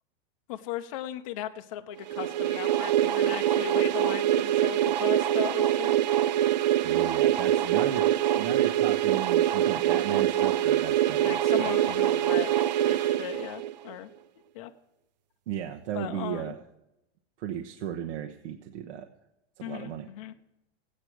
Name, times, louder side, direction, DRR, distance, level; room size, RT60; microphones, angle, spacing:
voice 1, 0.5-6.0 7.3-7.4 11.2-14.1 14.5-14.7 15.9-16.5 19.6-20.3, left 12 dB, 30° left, 7 dB, 0.5 m, -37 dB
sound 1, 2.1-13.9, right 12 dB, 40° right, 0.4 m, -24 dB
voice 2, 6.8-8.0 8.4-11.7 15.5-16.6 17.4-19.1 19.6-20.1, right 10 dB, 75° right, 4 dB, 1.1 m, -35 dB
16.5 x 8.7 x 6.2 m, 0.88 s
supercardioid pair, 175°, 35 cm